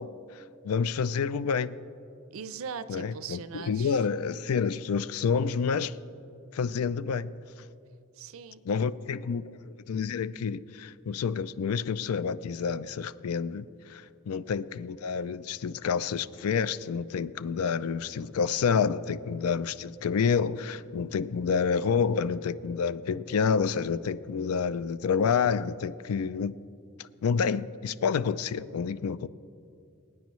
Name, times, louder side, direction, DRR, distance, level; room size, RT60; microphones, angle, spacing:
voice 1, 0.0-1.8 2.9-6.0 6.5-7.3 8.7-9.5 9.9-26.5 27.0-29.3, left 6 dB, 85° left, 0.4 m, -29 dB
voice 2, 2.3-4.1 8.1-8.9, right 6 dB, 65° right, 0.5 m, -41 dB
22.5 x 9.4 x 3.1 m
head